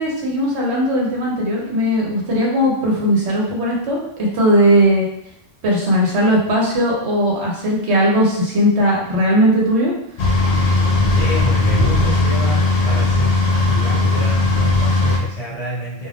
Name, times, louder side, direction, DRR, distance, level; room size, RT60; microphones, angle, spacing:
voice 1, 0.0-4.1 4.3-5.1 5.6-9.9, equal, 65° right, -3 dB, 0.9 m, -17 dB
sound 1, 10.2-15.2, left 2 dB, 75° left, 0.9 m, -17 dB
voice 2, 11.0-13.3 13.7-16.1, equal, 30° left, -8 dB, 1.1 m, -27 dB
2.5 x 2.4 x 3.2 m, 0.77 s
omnidirectional pair, 1.3 m